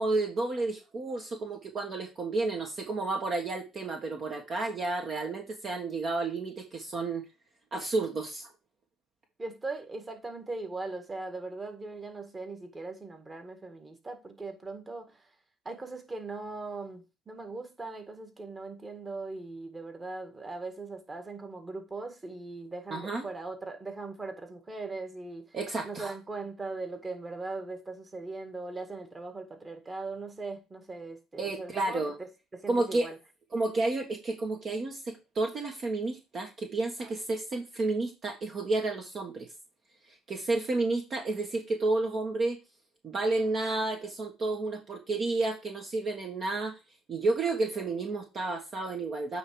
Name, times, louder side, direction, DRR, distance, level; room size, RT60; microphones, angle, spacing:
voice 1, 0.0-7.2 7.7-8.5 22.9-23.2 25.5-26.1 31.4-32.1 32.7-33.1 33.5-39.5 40.1-42.6 43.0-46.8 47.1-49.4, right 3 dB, 45° right, 1.5 m, -31 dB
voice 2, 9.4-15.3 15.7-25.6 25.9-32.3 32.5-33.2, right 3 dB, 25° right, 1.9 m, -40 dB
8.8 x 3.5 x 4.9 m
hypercardioid pair, 65°, 0 cm